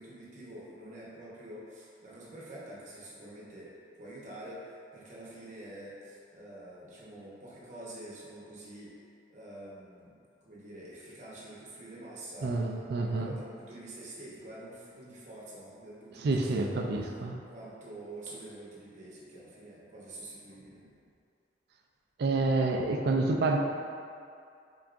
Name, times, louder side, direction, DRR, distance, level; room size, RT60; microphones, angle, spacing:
voice 1, 0.0-8.9 9.3-12.5 13.0-16.8 17.5-20.8, right 1 dB, 45° right, -6 dB, 0.9 m, -47 dB
voice 2, 12.4-13.4 16.2-17.4 22.2-23.6, right 3 dB, 65° right, 2 dB, 0.4 m, -28 dB
3.9 x 3.4 x 2.5 m, 2.4 s
head